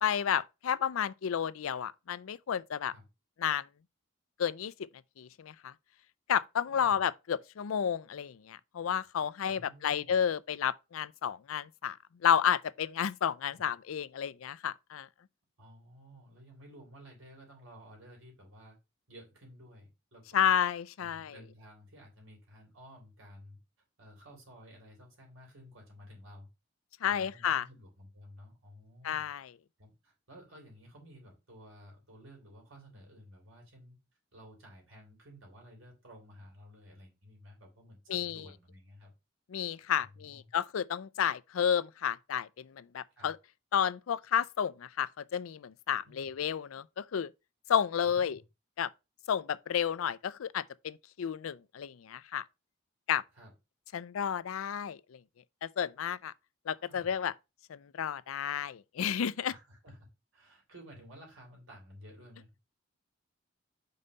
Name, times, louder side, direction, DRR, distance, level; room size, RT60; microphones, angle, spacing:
voice 1, 0.0-2.9 3.4-3.7 4.4-4.7 5.2-5.7 6.3-12.0 12.2-15.1 20.3-21.3 27.0-27.6 29.0-29.5 38.1-38.4 39.5-43.4 43.7-47.3 47.7-48.4 48.8-48.9 49.3-52.4 53.1-53.2 53.9-55.2 55.6-56.3 56.7-57.3 57.7-59.5, left 8 dB, 90° left, 0.4 m, -31 dB
voice 2, 9.5-10.2 13.5-13.6 15.6-18.8 19.1-20.5 21.0-23.6 24.0-26.5 27.0-29.3 29.8-34.0 34.3-39.1 40.0-40.5 43.2-43.3 46.0-46.3 48.0-48.4 53.3-53.5 56.8-57.1 59.5-60.0 60.3-62.6, equal, 80° right, 3.6 m, -54 dB
5.4 x 4.0 x 5.3 m
head